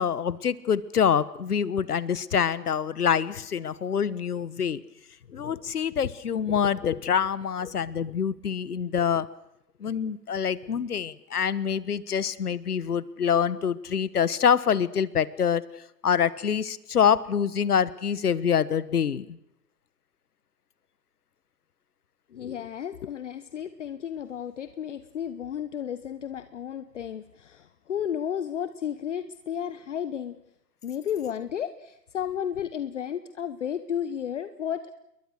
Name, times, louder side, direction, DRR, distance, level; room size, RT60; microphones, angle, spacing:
voice 1, 0.0-4.8 5.3-9.3 9.8-15.6 16.0-19.4, left 7 dB, 65° left, 18 dB, 1.4 m, -25 dB
voice 2, 22.3-30.4 30.8-34.9, left 9 dB, 45° left, 12 dB, 1.2 m, -33 dB
28.5 x 22.0 x 6.4 m, 0.84 s
figure-of-eight pair, 140°, 50 cm